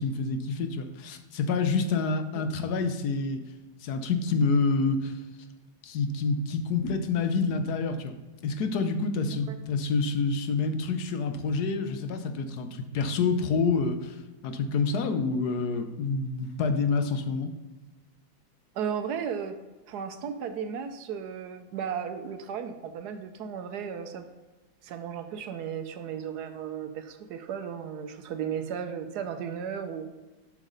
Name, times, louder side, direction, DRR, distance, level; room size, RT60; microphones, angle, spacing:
voice 1, 0.0-3.4 3.8-5.2 5.8-8.2 8.4-17.5, left 4 dB, 75° left, 8 dB, 1.3 m, -27 dB
voice 2, 18.7-19.6 19.9-24.3 24.8-30.1, right 7 dB, 75° right, 8 dB, 1.2 m, -35 dB
7.6 x 6.2 x 3.9 m, 1.2 s
omnidirectional pair, 1.7 m